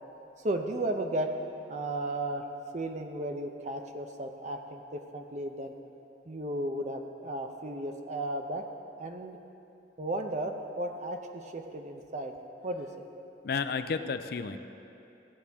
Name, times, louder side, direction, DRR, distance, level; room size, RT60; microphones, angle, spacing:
voice 1, 0.4-1.3 1.7-2.5 2.7-5.7 6.3-8.7 9.0-9.4 10.0-12.4 12.6-13.1, right 1 dB, 40° right, 5 dB, 0.7 m, -34 dB
voice 2, 13.4-14.6, left 5 dB, 60° left, 10 dB, 0.4 m, -32 dB
15.5 x 8.5 x 3.6 m, 2.8 s
head